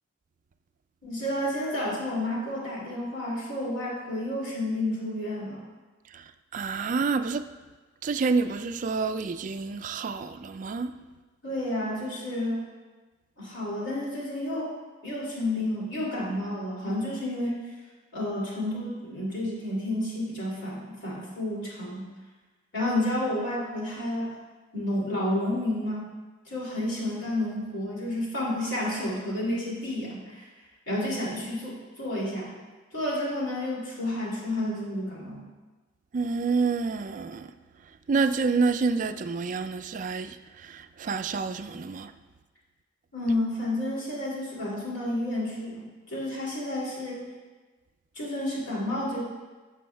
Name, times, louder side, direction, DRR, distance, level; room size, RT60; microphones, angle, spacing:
voice 1, 1.0-5.6 11.4-12.6 13.4-14.7 15.0-17.6 18.1-22.1 22.7-24.3 24.7-26.1 26.5-30.4 30.9-32.5 32.9-35.4 43.1-47.2 48.2-49.2, left 1 dB, 65° left, 2.5 m, -30 dB
voice 2, 6.5-7.5 8.0-10.9 36.1-37.5 38.1-42.1, right 4 dB, 40° right, 0.3 m, -28 dB
14.5 x 6.2 x 2.2 m
head